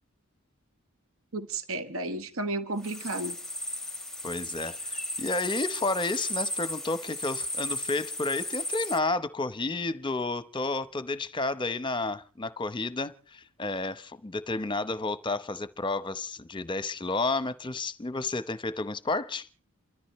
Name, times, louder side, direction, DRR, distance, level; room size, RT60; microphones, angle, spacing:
voice 1, 1.3-3.4, right 2 dB, 70° right, 1.4 m, -33 dB
sound 1, 2.8-9.0, left 1 dB, ahead, 1.1 m, -35 dB
voice 2, 4.2-19.5, left 3 dB, 20° left, 0.9 m, -31 dB
29.0 x 13.5 x 3.2 m
head